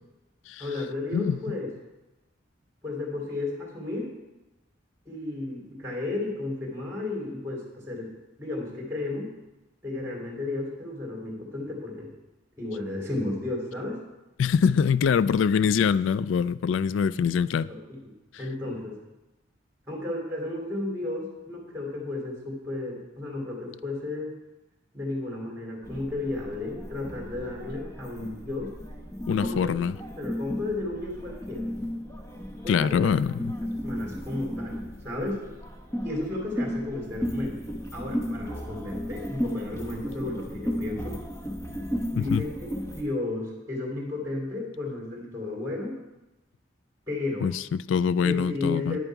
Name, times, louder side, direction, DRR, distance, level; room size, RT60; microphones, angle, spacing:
voice 1, 0.6-1.7 2.8-4.1 5.0-8.1 8.4-9.3 9.8-12.1 12.6-14.0 17.7-18.1 18.4-19.0 19.9-24.3 24.9-28.7 29.4-29.7 30.1-31.7 32.6-33.1 33.8-35.4 36.0-37.6 37.9-41.2 42.1-42.5 42.9-45.9 47.1-47.5 48.2-49.0, left 2 dB, 15° right, 2.8 m, -33 dB
voice 2, 14.4-17.7 29.3-29.9 32.7-33.5 42.2-42.4 47.4-49.0, left 6 dB, 80° left, 0.3 m, -24 dB
sound 1, 25.8-43.0, equal, 15° left, 1.1 m, -35 dB
10.0 x 9.0 x 4.6 m
head